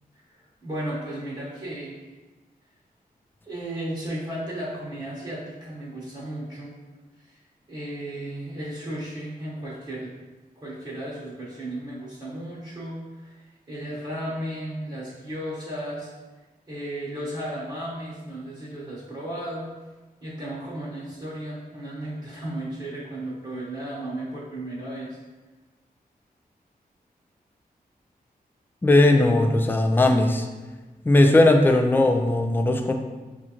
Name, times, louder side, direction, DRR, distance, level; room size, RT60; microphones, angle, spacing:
voice 1, 0.6-2.0 3.5-6.7 7.2-7.3 7.7-10.1 10.6-16.1 16.7-19.6 20.2-25.2, right 1 dB, 30° right, -8 dB, 1.0 m, -34 dB
voice 2, 28.8-30.5 31.1-32.9, left 2 dB, 15° left, 4 dB, 0.3 m, -18 dB
6.1 x 2.5 x 2.8 m, 1.2 s
wide cardioid pair, 120°, 16 cm